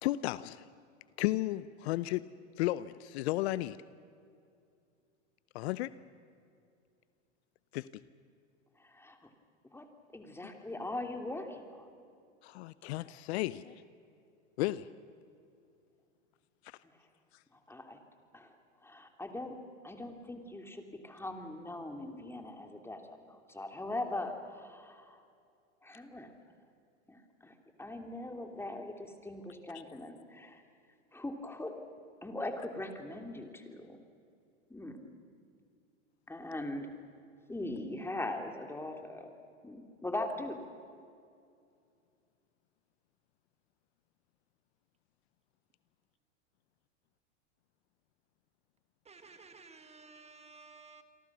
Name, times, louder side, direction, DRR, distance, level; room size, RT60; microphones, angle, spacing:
voice 1, 0.0-0.7 1.2-2.2 2.6-3.8 5.5-5.9 7.7-7.9 12.4-13.8 14.6-14.9 16.6-16.8, left 17 dB, 60° left, 17 dB, 0.8 m, -33 dB
voice 2, 8.8-9.3 9.7-9.8 10.1-11.9 17.7-18.0 18.3-18.6 18.8-19.6 19.8-25.2 25.8-26.3 27.1-30.6 31.1-31.7 32.2-34.0 34.7-35.0 36.3-36.9 37.5-39.3 39.6-40.6, left 2 dB, 5° left, 4 dB, 2.9 m, -41 dB
voice 3, 49.0-51.0, right 4 dB, 15° right, 8 dB, 1.5 m, -54 dB
28.5 x 23.5 x 6.2 m, 2.4 s
hypercardioid pair, 105°, 36 cm